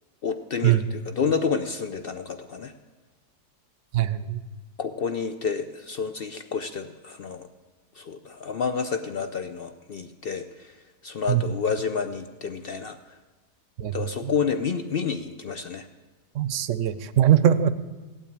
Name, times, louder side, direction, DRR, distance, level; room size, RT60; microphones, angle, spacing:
voice 1, 0.2-2.7 4.8-7.5 8.0-10.7 11.0-13.0 13.9-15.9, left 6 dB, 70° left, 9 dB, 0.5 m, -29 dB
voice 2, 3.9-4.4 11.3-11.4 13.8-13.9 16.4-17.7, right 11 dB, 60° right, 14 dB, 0.9 m, -21 dB
16.5 x 9.1 x 8.7 m, 1.3 s
omnidirectional pair, 1.8 m